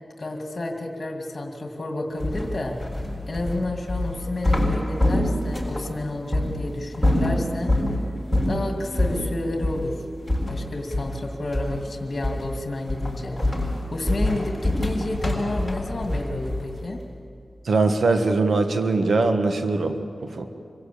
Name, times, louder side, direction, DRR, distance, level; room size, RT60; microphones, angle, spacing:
voice 1, 0.2-2.8 3.3-7.7 8.4-10.0 10.5-17.0, left 2 dB, 50° left, 2 dB, 2.4 m, -30 dB
sound 1, 2.2-5.8 6.3-6.5 6.9-7.9 8.3-8.6 9.0-9.2 9.6-9.8 10.3-11.2 11.5-11.9 12.2-12.5 12.9-16.8, left 1 dB, ahead, 7.5 m, -24 dB
voice 2, 17.6-20.5, right 3 dB, 80° right, 6 dB, 1.5 m, -22 dB
26.0 x 16.0 x 8.5 m, 2.4 s
cardioid pair, 60°, 0 cm